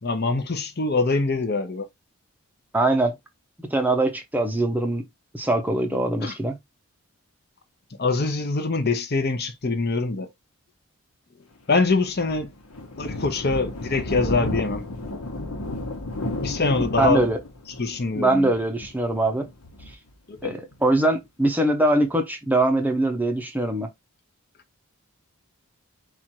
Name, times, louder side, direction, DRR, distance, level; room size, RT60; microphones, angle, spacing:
voice 1, 0.0-1.9 6.2-6.3 8.0-10.3 11.7-12.5 13.0-14.8 16.4-17.2 17.8-18.5 20.3-20.5, left 3 dB, 45° left, 0.8 m, -24 dB
voice 2, 2.7-3.1 3.6-5.0 5.3-6.6 17.0-17.4 18.2-19.5 19.9-20.0 20.4-23.9, right 2 dB, 10° right, 0.6 m, -22 dB
Thunder, 11.7-20.9, left 2 dB, 75° left, 1.1 m, -33 dB
4.4 x 2.5 x 4.4 m
head